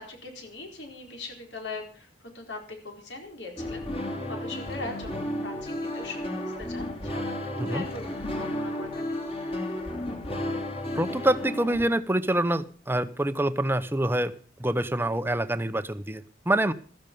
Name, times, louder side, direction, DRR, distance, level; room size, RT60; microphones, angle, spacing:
voice 1, 0.0-6.3 6.6-9.2, left 2 dB, 75° left, 3 dB, 4.4 m, -40 dB
sound 1, 3.6-11.8, left 1 dB, 30° left, 2.9 m, -33 dB
voice 2, 10.9-14.3 14.6-16.7, right 1 dB, 10° right, 12 dB, 0.8 m, -26 dB
16.0 x 13.5 x 5.3 m, 0.40 s
head